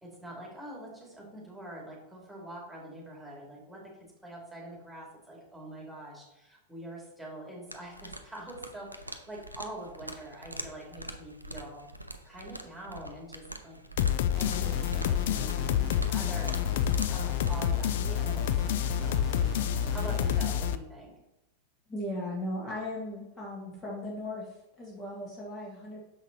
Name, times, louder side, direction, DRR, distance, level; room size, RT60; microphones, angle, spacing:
voice 1, 0.0-11.9 12.2-19.6 19.9-21.1, right 1 dB, 5° right, -3 dB, 2.3 m, -45 dB
sound 1, 7.7-17.6, right 1 dB, 85° right, 0.5 m, -44 dB
sound 2, 14.0-20.7, left 9 dB, 55° left, 0.3 m, -28 dB
sound 3, 14.3-20.6, right 6 dB, 30° right, 0.4 m, -45 dB
voice 2, 21.9-26.0, left 1 dB, 20° left, -4 dB, 1.5 m, -37 dB
6.8 x 5.7 x 2.9 m, 0.93 s
figure-of-eight pair, 90°, 0 cm